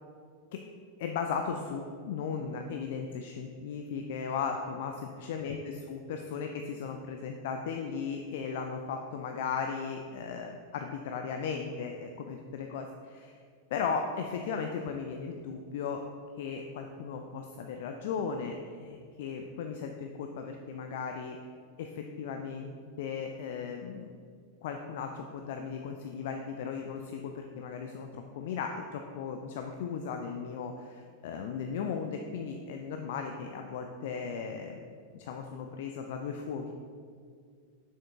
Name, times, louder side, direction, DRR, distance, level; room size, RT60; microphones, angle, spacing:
voice 1, 1.0-13.4 13.7-16.0 16.4-21.4 21.8-22.7 23.0-24.1 24.6-34.8 35.1-36.7, left 6 dB, 55° left, 4 dB, 0.5 m, -36 dB
7.3 x 7.3 x 3.6 m, 2.2 s
figure-of-eight pair, 90°, 0 cm